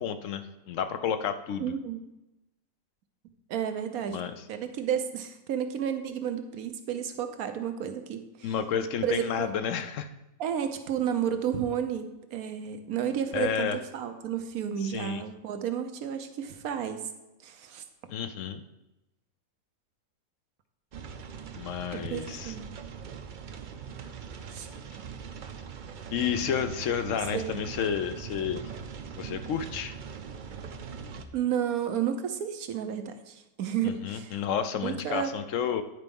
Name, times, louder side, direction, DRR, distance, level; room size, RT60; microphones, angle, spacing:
voice 1, 0.0-1.7 4.1-4.3 8.4-10.1 13.3-13.8 14.8-15.2 18.1-18.6 21.5-22.5 26.1-28.6 29.2-29.9 33.8-35.8, left 8 dB, 70° left, 10 dB, 0.9 m, -31 dB
voice 2, 1.6-2.0 3.5-4.2 4.5-8.5 9.0-9.6 10.4-17.0 17.4-17.8 21.9-22.7 24.5-24.7 27.3-27.6 31.3-34.4 34.8-35.3, right 9 dB, 90° right, 7 dB, 1.3 m, -32 dB
sound 1, 20.9-31.2, right 6 dB, 55° right, 0.5 m, -41 dB
9.9 x 4.6 x 5.3 m, 0.95 s
omnidirectional pair, 1.5 m